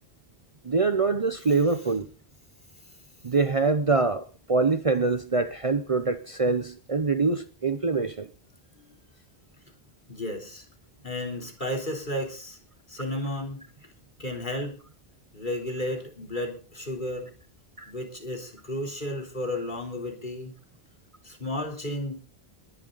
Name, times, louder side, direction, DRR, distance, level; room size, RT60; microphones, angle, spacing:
voice 1, 0.6-2.1 3.2-8.3 17.8-17.9, right 4 dB, 35° right, 0.8 m, -24 dB
voice 2, 1.5-1.9 10.1-10.7 11.0-12.6 12.9-13.6 14.2-14.8 15.3-17.3 17.9-20.5 21.2-22.1, left 1 dB, 50° left, 3.9 m, -33 dB
21.0 x 11.0 x 4.0 m
omnidirectional pair, 1.1 m